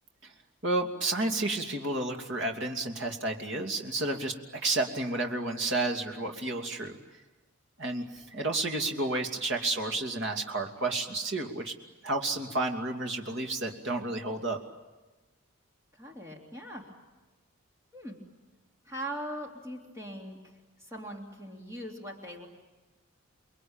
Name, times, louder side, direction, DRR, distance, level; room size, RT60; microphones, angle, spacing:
voice 1, 0.6-4.3 4.6-6.9 7.8-11.7 12.0-14.6, right 2 dB, 55° right, 3 dB, 2.8 m, -31 dB
voice 2, 16.0-16.9 17.9-18.2 18.8-20.4 20.8-22.5, right 1 dB, 15° right, 0 dB, 3.2 m, -40 dB
30.0 x 22.0 x 9.0 m, 1.2 s
head